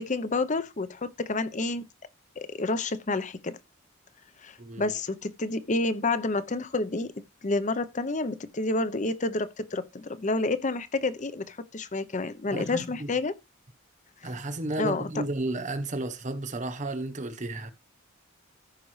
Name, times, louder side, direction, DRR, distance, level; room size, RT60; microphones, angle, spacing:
voice 1, 0.0-1.8 2.4-3.6 4.4-7.1 7.4-13.4 14.8-15.1, left 2 dB, 40° left, 0.7 m, -29 dB
voice 2, 4.6-4.9 12.5-13.1 14.2-17.7, right 2 dB, 40° right, 1.0 m, -33 dB
14.5 x 5.3 x 3.2 m
head